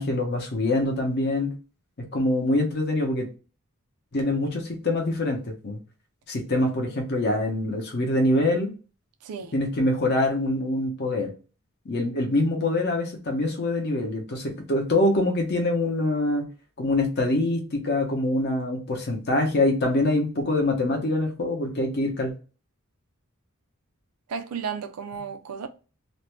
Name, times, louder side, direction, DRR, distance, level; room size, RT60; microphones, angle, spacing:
voice 1, 0.0-1.5 2.1-3.3 4.1-5.8 6.3-8.7 9.5-11.3 11.9-16.5 16.8-22.3, left 2 dB, 50° left, 0.7 m, -24 dB
voice 2, 9.2-9.5 24.3-25.7, right 6 dB, 90° right, 0.4 m, -33 dB
2.5 x 2.1 x 3.0 m
head